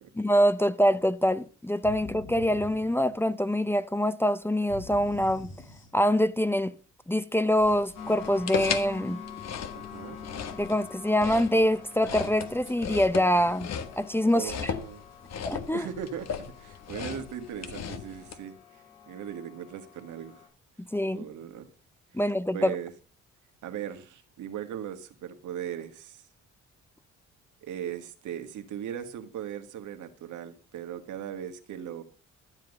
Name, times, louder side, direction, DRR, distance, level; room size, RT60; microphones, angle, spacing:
voice 1, 0.2-5.5 5.9-6.7 7.1-9.2 10.5-13.7 14.0-14.8 15.5-15.9 20.9-21.2 22.1-22.8, equal, 10° left, 0.6 m, -25 dB
sound 1, 1.8-3.6 4.7-6.4, left 2 dB, 40° left, 3.1 m, -45 dB
sound 2, 7.6-18.4, left 7 dB, 60° left, 1.4 m, -37 dB
sound 3, 7.9-20.5, left 7 dB, 90° left, 5.9 m, -46 dB
voice 2, 9.7-10.2 14.3-15.1 15.7-18.6 19.1-20.5 21.1-21.7 22.5-22.9 23.6-26.2 27.6-32.0, right 9 dB, 75° right, 1.7 m, -38 dB
12.5 x 7.8 x 5.3 m
cardioid pair, 90°, 30 cm